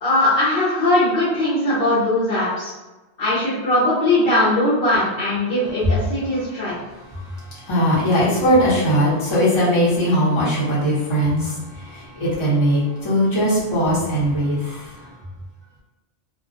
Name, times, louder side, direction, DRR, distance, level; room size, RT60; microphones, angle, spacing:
voice 1, 0.0-2.7 3.2-6.7, left 1 dB, 60° left, -8 dB, 0.8 m, -20 dB
voice 2, 7.7-11.6 11.8-14.8, equal, 30° left, -8 dB, 0.8 m, -19 dB
2.2 x 2.2 x 2.5 m, 1.1 s
omnidirectional pair, 1.3 m